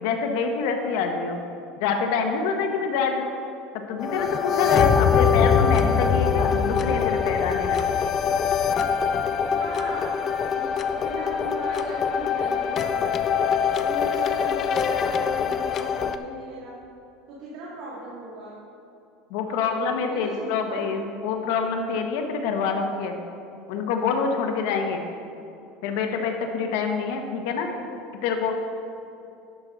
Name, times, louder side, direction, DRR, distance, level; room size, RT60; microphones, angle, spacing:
voice 1, 0.0-1.4 1.8-3.3 3.9-7.8 19.3-23.2 23.7-25.0 25.8-27.7 28.1-28.5, left 5 dB, 70° left, 4 dB, 1.0 m, -26 dB
sound 1, 4.0-16.2, left 7 dB, 30° left, 0.4 m, -23 dB
voice 2, 9.5-13.4 13.8-16.7 17.3-18.5 19.5-19.6 19.9-20.9 27.4-27.8, right 1 dB, 65° right, -7 dB, 2.3 m, -38 dB
11.5 x 6.2 x 3.9 m, 2.7 s
supercardioid pair, 150°, 0 cm